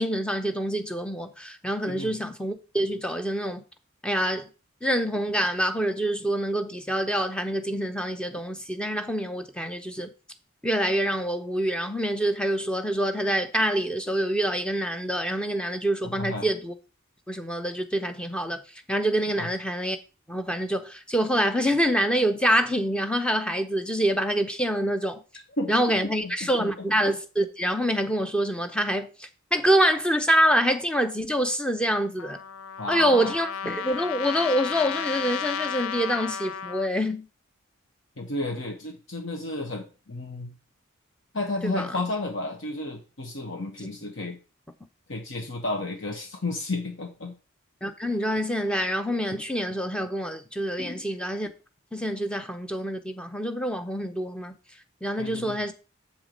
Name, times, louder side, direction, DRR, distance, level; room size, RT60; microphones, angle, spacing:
voice 1, 0.0-3.6 4.0-4.5 4.8-10.1 10.6-16.7 17.3-18.6 18.9-20.0 20.3-25.2 25.7-32.4 32.9-37.2 41.6-41.9 47.8-51.5 51.9-54.5 55.0-55.7, equal, 5° left, 0.7 m, -26 dB
voice 2, 16.0-16.5 19.4-19.5 25.6-25.7 26.2-26.9 32.8-33.3 33.6-33.8 38.2-40.5 41.3-44.4 45.1-47.3 50.8-51.0 55.2-55.6, left 2 dB, 60° left, 1.1 m, -32 dB
Trumpet, 32.2-36.9, left 7 dB, 85° left, 0.4 m, -33 dB
7.3 x 4.6 x 5.1 m
head